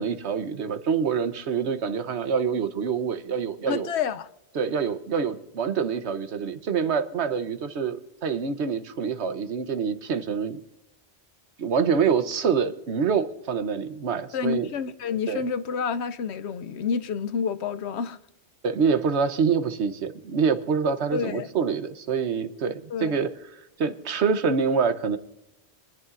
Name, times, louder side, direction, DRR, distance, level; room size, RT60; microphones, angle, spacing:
voice 1, 0.0-3.9 4.5-10.6 11.6-14.7 15.3-15.4 18.6-23.3 23.8-25.2, right 6 dB, 70° right, 1.1 m, -26 dB
voice 2, 3.7-4.3 14.3-18.2 21.1-21.5 22.9-23.2, left 6 dB, 70° left, 0.9 m, -29 dB
24.0 x 10.5 x 2.5 m
omnidirectional pair, 1.2 m